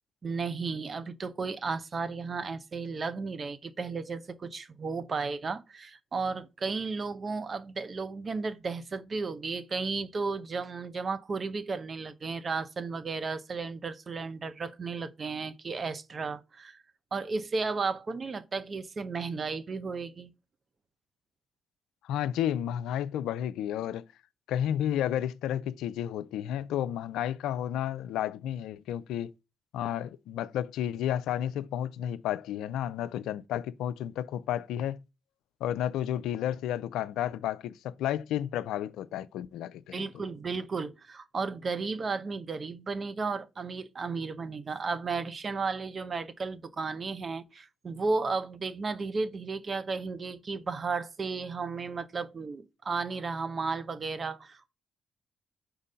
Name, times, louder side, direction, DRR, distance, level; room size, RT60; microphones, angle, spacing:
voice 1, 0.2-16.8 17.1-20.3 39.9-54.7, right 4 dB, 45° right, 0.7 m, -34 dB
voice 2, 22.0-24.0 24.5-29.3 29.7-35.0 35.6-40.0, left 11 dB, 80° left, 0.4 m, -32 dB
4.5 x 3.8 x 5.5 m
supercardioid pair, 55°, 0 cm